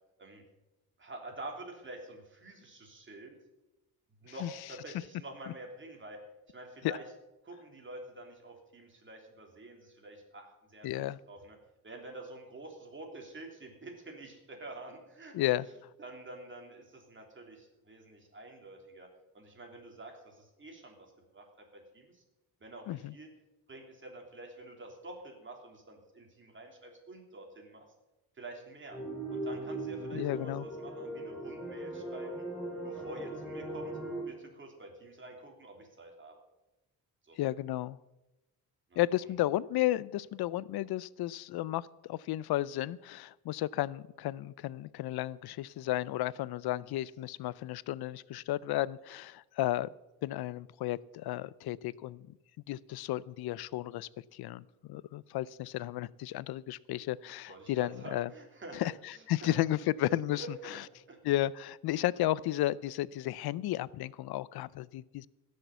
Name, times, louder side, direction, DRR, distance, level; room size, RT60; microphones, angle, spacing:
voice 1, 1.0-3.4 4.2-6.2 6.5-7.0 7.4-11.6 11.8-15.3 16.0-19.1 19.3-21.4 21.7-22.2 22.6-23.3 23.7-27.9 28.3-29.0 29.3-32.4 32.8-33.9 34.3-36.4 37.2-37.4 38.9-39.0 57.5-59.6 60.3-61.2, right 2 dB, 30° right, 2 dB, 3.2 m, -48 dB
voice 2, 10.8-11.2 15.3-15.7 22.9-23.1 30.1-30.7 37.4-38.0 39.0-49.9 50.2-52.4 52.7-58.3 58.7-60.4 61.2-65.3, left 15 dB, 80° left, 21 dB, 0.5 m, -33 dB
sound 1, 28.9-34.2, right 1 dB, ahead, 4.3 m, -39 dB
16.5 x 6.6 x 8.1 m, 0.99 s
cardioid pair, 125°, 37 cm